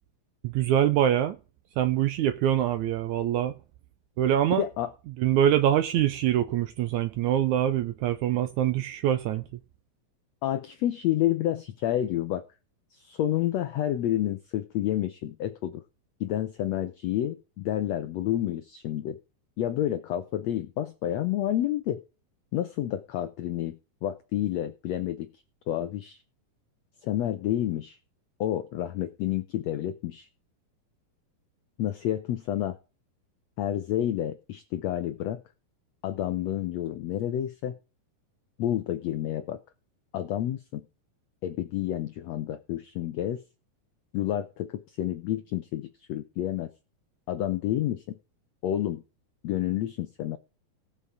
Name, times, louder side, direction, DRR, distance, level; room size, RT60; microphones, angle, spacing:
voice 1, 0.4-1.4 1.8-3.5 4.2-4.6 5.2-9.5, right 11 dB, 80° right, 1.8 m, -24 dB
voice 2, 4.6-4.9 10.4-12.4 12.9-15.8 16.2-19.2 19.6-22.0 22.5-25.3 25.7-26.2 27.0-28.0 28.4-30.3 31.8-32.8 33.6-35.4 36.0-37.7 38.6-39.6 40.1-40.8 41.4-43.4 44.1-46.7 47.3-48.2 48.6-49.0 49.4-50.4, left 12 dB, 90° left, 1.5 m, -29 dB
17.5 x 7.0 x 4.9 m
omnidirectional pair, 4.1 m